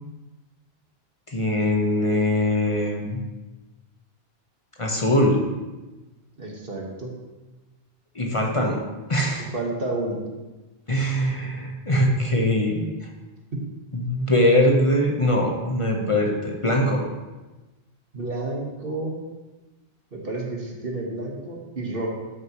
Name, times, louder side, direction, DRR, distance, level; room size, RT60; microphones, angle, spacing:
voice 1, 1.3-3.2 4.8-5.4 8.1-9.5 10.9-13.1 13.9-17.1, left 1 dB, 30° left, 0 dB, 1.1 m, -22 dB
voice 2, 6.4-7.1 9.5-10.2 13.5-13.6 18.1-19.2 20.1-22.1, right 2 dB, 65° right, -1 dB, 1.6 m, -30 dB
12.5 x 6.5 x 3.0 m, 1.2 s
omnidirectional pair, 1.0 m